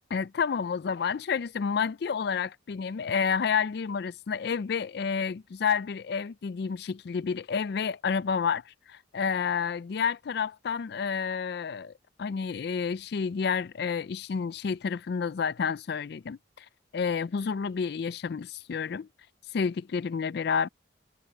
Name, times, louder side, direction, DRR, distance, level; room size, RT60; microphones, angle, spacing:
voice 1, 0.1-11.9 12.2-16.7 16.9-19.1 19.5-20.7, left 6 dB, 55° left, 0.4 m, -30 dB
head